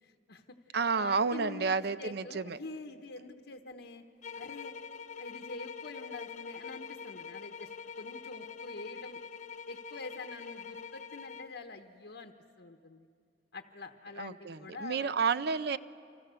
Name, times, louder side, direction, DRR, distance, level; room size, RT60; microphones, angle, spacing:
voice 1, 0.0-0.6 0.9-4.0 4.3-4.7 5.2-7.7 8.0-9.2 9.7-13.1 13.5-15.1, left 3 dB, 75° left, 4 dB, 1.1 m, -46 dB
voice 2, 0.7-2.6 14.2-15.8, right 5 dB, 65° right, 13 dB, 0.7 m, -30 dB
sound 1, 4.2-11.6, left 6 dB, 45° left, 0.6 m, -44 dB
29.0 x 25.5 x 6.9 m, 2.4 s
head